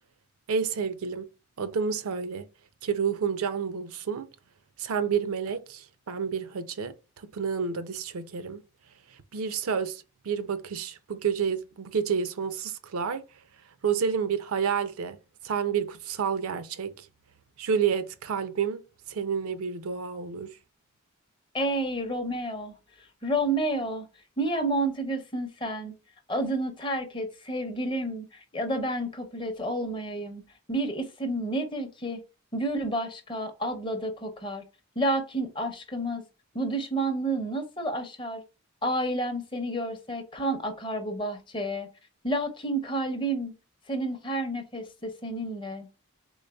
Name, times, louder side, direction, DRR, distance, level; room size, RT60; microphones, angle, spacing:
voice 1, 0.5-1.3 1.6-2.5 2.8-4.3 4.8-6.9 7.3-8.6 9.3-13.2 13.8-15.2 15.4-17.1 17.6-18.8 19.1-20.6, right 6 dB, 80° right, 0.5 m, -29 dB
voice 2, 21.5-24.1 24.4-26.0 26.3-30.4 30.7-32.2 32.5-34.6 35.0-36.2 36.5-38.4 38.8-41.9 42.2-43.5 43.9-45.9, right 1 dB, 20° left, 0.6 m, -30 dB
3.8 x 3.5 x 2.2 m
head